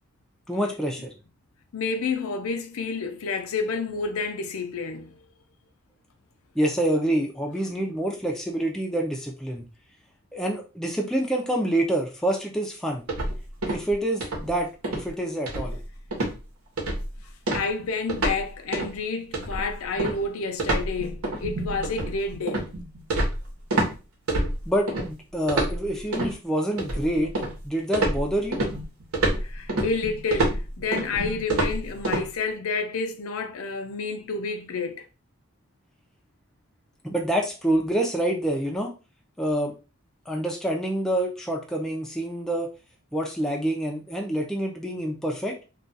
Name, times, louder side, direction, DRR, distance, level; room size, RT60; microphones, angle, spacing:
voice 1, 0.5-1.1 6.6-9.6 10.3-13.0 13.7-15.8 24.7-27.3 27.6-28.6 37.0-38.9 39.4-39.7 40.3-42.7 43.1-45.6, right 1 dB, ahead, 0.4 m, -27 dB
voice 2, 1.7-5.2 17.5-22.7 29.4-35.1, left 4 dB, 70° left, 0.5 m, -29 dB
sound 1, 13.1-13.9 14.2-14.5 14.8-15.1 15.5-15.9 16.1-16.4 16.8-17.1 17.5-18.4 18.7-19.0 19.3-23.9 24.3-25.1 25.5-26.3 26.8-27.6 27.9-32.2, right 2 dB, 80° right, 1.0 m, -27 dB
2.4 x 2.3 x 3.9 m
head